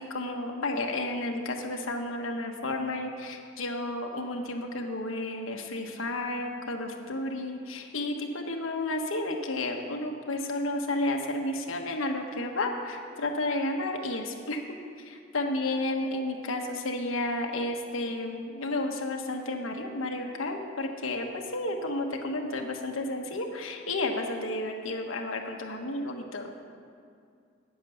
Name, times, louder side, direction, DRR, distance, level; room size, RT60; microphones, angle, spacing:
voice 1, 0.0-14.6 15.0-26.5, left 2 dB, 85° left, 2 dB, 1.2 m, -32 dB
9.1 x 8.9 x 7.0 m, 2.3 s
head